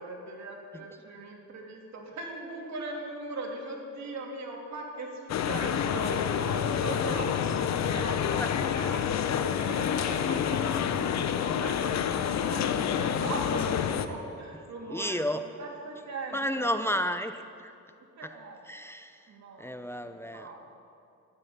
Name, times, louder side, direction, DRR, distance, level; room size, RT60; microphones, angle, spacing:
voice 1, 0.0-8.9 9.2-16.7 18.2-18.6 19.3-19.7 20.0-20.6, right 2 dB, 65° right, 0 dB, 3.1 m, -40 dB
sound 1, 5.3-14.1, left 8 dB, 60° left, 0.9 m, -28 dB
voice 2, 8.3-9.1 14.9-15.4 16.3-17.7 18.2-18.4 18.6-20.5, equal, 10° left, 8 dB, 0.7 m, -33 dB
13.0 x 9.9 x 10.0 m, 2.6 s
cardioid pair, 90°, 30 cm